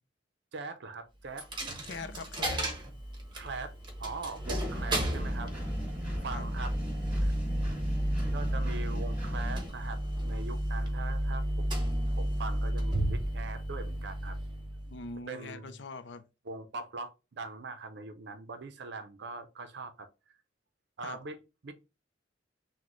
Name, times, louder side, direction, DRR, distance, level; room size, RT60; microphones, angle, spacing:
voice 1, 0.5-1.5 3.3-3.7 4.0-5.5 6.2-6.7 7.2-7.3 8.3-14.4 15.3-15.8 16.4-20.4 21.0-21.7, right 3 dB, 65° right, 0.5 m, -42 dB
Coin (dropping), 1.4-15.1, right 1 dB, 25° right, 1.0 m, -32 dB
voice 2, 1.9-2.7 6.3-6.5 14.9-16.2 21.0-21.2, left 4 dB, 70° left, 0.5 m, -42 dB
Engine, 4.4-9.7, equal, 10° right, 1.9 m, -38 dB
6.1 x 2.1 x 3.1 m
head